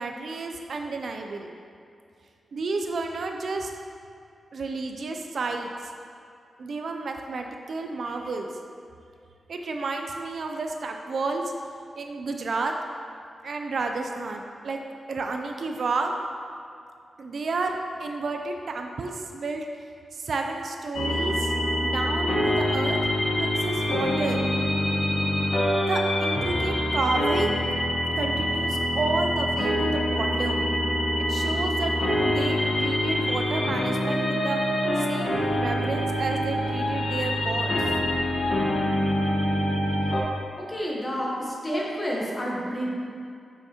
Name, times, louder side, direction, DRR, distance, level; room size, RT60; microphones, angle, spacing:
voice 1, 0.0-1.5 2.5-3.7 4.5-5.9 6.6-8.5 9.5-11.5 12.0-12.7 13.4-14.8 15.1-16.1 17.2-19.6 20.1-21.5 21.8-23.0 23.4-24.5 25.9-27.6 28.2-30.7 31.2-34.6 35.0-37.9, right 3 dB, 55° right, 3 dB, 0.3 m, -31 dB
sound 1, 20.9-40.2, equal, 80° left, 1.0 m, -25 dB
voice 2, 40.6-42.9, equal, 20° left, -4 dB, 1.0 m, -29 dB
6.9 x 5.6 x 2.8 m, 2.4 s
wide cardioid pair, 155°, 0 cm